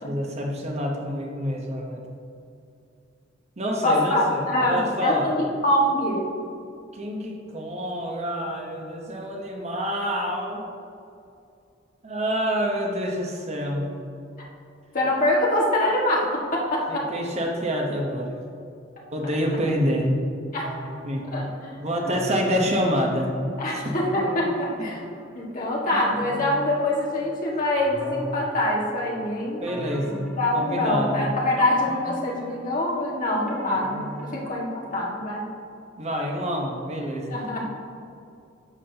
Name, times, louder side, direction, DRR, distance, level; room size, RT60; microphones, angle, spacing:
voice 1, 0.0-2.0 3.6-5.3 6.9-10.6 12.0-13.9 16.9-18.3 19.1-20.1 20.8-21.2 21.8-23.3 23.7-23.9 29.6-31.1 36.0-37.4, equal, 35° right, 0 dB, 1.0 m, -27 dB
voice 2, 3.8-6.3 14.9-17.1 20.5-20.7 21.3-21.8 23.6-25.0 25.3-29.6 30.4-35.5 37.3-37.6, left 1 dB, 45° left, -4 dB, 1.7 m, -24 dB
sound 1, 20.6-21.4 22.0-23.5 24.0-25.3 25.6-27.3 27.8-29.1 29.7-31.1 31.6-34.8 35.2-35.3, equal, 5° right, 1.8 m, -39 dB
11.0 x 7.2 x 2.9 m, 2.5 s
head